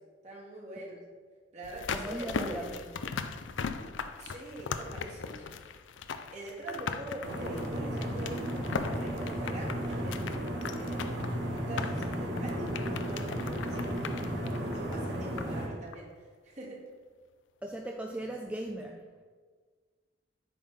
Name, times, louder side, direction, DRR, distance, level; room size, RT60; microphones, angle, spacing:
voice 1, 0.2-1.0 1.5-2.7 4.2-5.4 6.3-10.2 10.8-11.1 11.7-13.3 13.6-14.3 14.6-16.1 16.4-16.8, right 1 dB, 40° right, -4 dB, 1.8 m, -43 dB
sound 1, 1.6-15.7 15.9-16.0, left 5 dB, 85° left, 0.4 m, -39 dB
voice 2, 1.9-3.2 17.6-19.2, right 1 dB, 5° right, 2 dB, 0.4 m, -39 dB
sound 2, 7.2-15.7, equal, 70° right, 1.5 m, -34 dB
8.4 x 5.5 x 3.6 m, 1.5 s
head